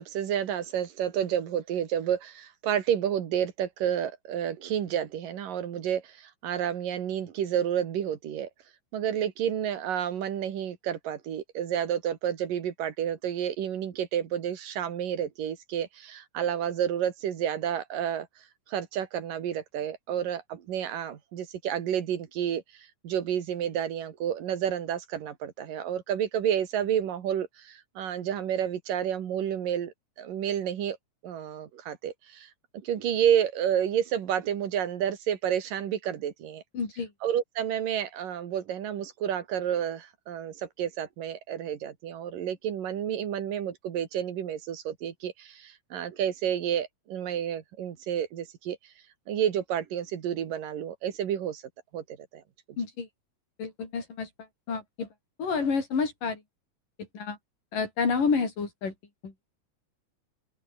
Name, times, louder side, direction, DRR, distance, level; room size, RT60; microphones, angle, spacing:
voice 1, 0.0-8.5 8.9-18.3 18.7-31.0 31.2-36.6 37.2-48.8 49.3-51.6 51.9-52.4, right 9 dB, 85° right, 3.8 m, -30 dB
voice 2, 36.7-37.1 52.8-53.1 53.6-54.3 54.7-55.1 55.4-56.4 57.1-57.4 57.7-58.9 59.2-59.3, left 5 dB, 80° left, 6.8 m, -29 dB
open air
omnidirectional pair, 3.8 m